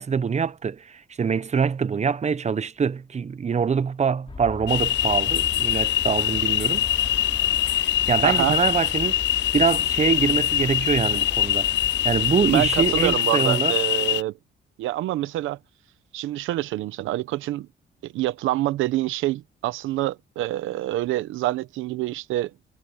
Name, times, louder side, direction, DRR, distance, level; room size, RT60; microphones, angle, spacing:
voice 1, 0.0-6.9 7.6-9.2 9.5-13.7, right 6 dB, 35° right, 0.9 m, -24 dB
sound 1, 4.3-13.2, left 4 dB, 30° left, 2.7 m, -38 dB
sound 2, 4.7-14.2, left 13 dB, 65° left, 0.4 m, -23 dB
sound 3, 5.9-8.5, right 1 dB, 10° right, 6.7 m, -50 dB
voice 2, 8.2-8.6 12.5-14.4 14.8-15.6 16.1-17.7 18.0-22.5, right 15 dB, 90° right, 0.8 m, -26 dB
cardioid pair, 90°, 20 cm